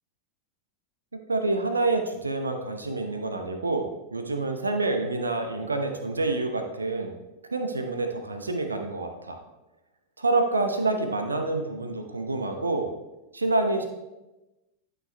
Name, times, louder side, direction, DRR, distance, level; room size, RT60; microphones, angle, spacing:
voice 1, 1.3-7.1 7.5-9.4 10.2-12.9 13.3-13.9, right 2 dB, 80° right, 5 dB, 0.8 m, -27 dB
11.5 x 6.6 x 2.2 m, 1.0 s
figure-of-eight pair, 90°, 0 cm